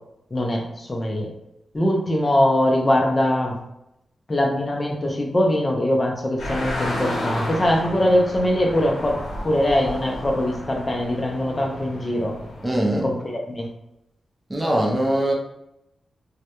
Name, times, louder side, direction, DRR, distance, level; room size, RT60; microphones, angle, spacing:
voice 1, 0.3-1.3 1.7-3.6 4.3-12.3 13.0-13.7, left 1 dB, 35° left, 0 dB, 0.5 m, -22 dB
sound 1, 6.4-12.7, left 1 dB, 80° left, 0.7 m, -31 dB
voice 2, 12.6-13.1 14.5-15.3, right 1 dB, 20° right, -1 dB, 0.5 m, -21 dB
2.2 x 2.0 x 2.8 m, 0.83 s
cardioid pair, 75°, 0 cm